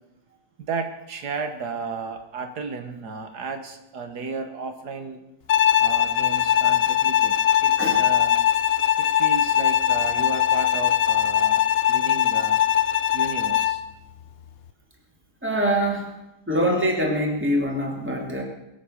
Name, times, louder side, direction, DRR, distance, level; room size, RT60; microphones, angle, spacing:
voice 1, 0.6-5.2 5.8-8.4 9.0-12.6 13.1-13.8, right 4 dB, 80° right, 6 dB, 1.8 m, -33 dB
Bowed string instrument, 5.5-13.9, left 11 dB, 65° left, 0.6 m, -21 dB
voice 2, 15.4-16.1 16.5-18.4, equal, 5° right, 0 dB, 2.8 m, -24 dB
22.0 x 8.4 x 6.4 m, 0.88 s
omnidirectional pair, 1.7 m